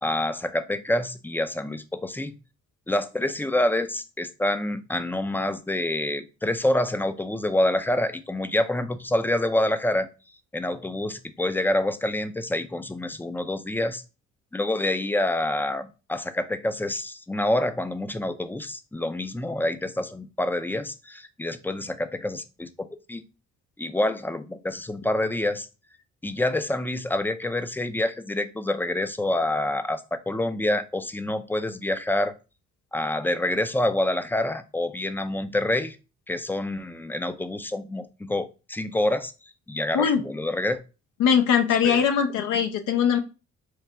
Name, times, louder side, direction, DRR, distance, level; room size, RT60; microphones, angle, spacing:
voice 1, 0.0-2.3 2.9-10.1 10.5-14.0 14.5-23.2 23.8-25.7 26.2-32.3 32.9-36.0 36.3-39.3 39.7-40.8 41.8-42.0, left 1 dB, 5° left, 11 dB, 0.3 m, -27 dB
voice 2, 41.2-43.2, left 7 dB, 85° left, 6 dB, 0.7 m, -21 dB
3.3 x 2.5 x 4.2 m, 0.31 s
cardioid pair, 90°, 30 cm